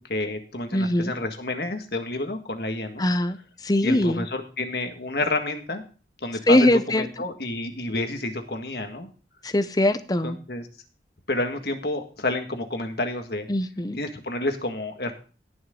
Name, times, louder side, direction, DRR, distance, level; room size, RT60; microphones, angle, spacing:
voice 1, 0.1-3.0 3.8-5.8 6.2-9.1 10.2-10.7 11.3-13.5 14.0-15.1, left 2 dB, 60° left, 6 dB, 1.7 m, -29 dB
voice 2, 0.7-1.1 3.0-4.2 6.5-7.1 9.4-10.4 13.5-14.0, left 1 dB, 20° left, 12 dB, 0.7 m, -22 dB
18.0 x 6.3 x 3.8 m, 0.38 s
head